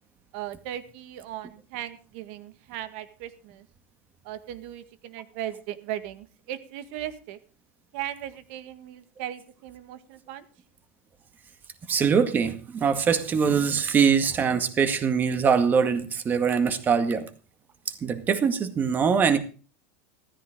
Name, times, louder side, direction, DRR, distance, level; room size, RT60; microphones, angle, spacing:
voice 1, 0.3-3.7 4.2-7.4 7.9-10.5, right 12 dB, 65° right, 11 dB, 1.8 m, -37 dB
voice 2, 11.9-17.3 17.9-19.4, right 6 dB, 25° right, 9 dB, 2.0 m, -23 dB
15.0 x 14.0 x 3.8 m, 0.38 s
supercardioid pair, 130°, 7 cm